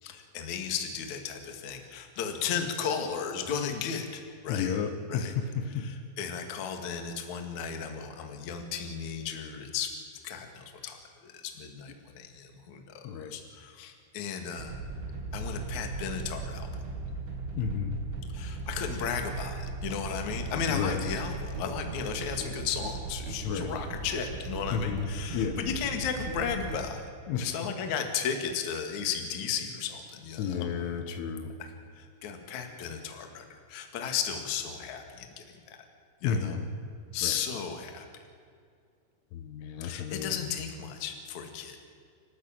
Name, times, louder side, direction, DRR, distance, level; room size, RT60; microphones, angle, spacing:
voice 1, 0.0-4.8 5.1-5.4 5.7-9.9 10.2-14.8 15.3-16.7 18.3-27.1 27.4-30.7 31.6-35.8 36.2-36.6 37.1-38.1 39.8-41.8, left 7 dB, 50° left, 5 dB, 2.7 m, -35 dB
voice 2, 4.5-5.9 13.1-13.4 17.6-18.0 20.7-21.0 23.4-23.7 24.7-25.1 25.3-25.6 27.3-27.5 30.4-31.5 36.2-36.6 37.2-37.3 39.3-40.3, left 7 dB, 80° left, 8 dB, 3.8 m, -31 dB
sound 1, 14.6-26.8, right 3 dB, 85° right, 6.0 m, -38 dB
30.0 x 12.5 x 8.9 m, 2.3 s
omnidirectional pair, 5.7 m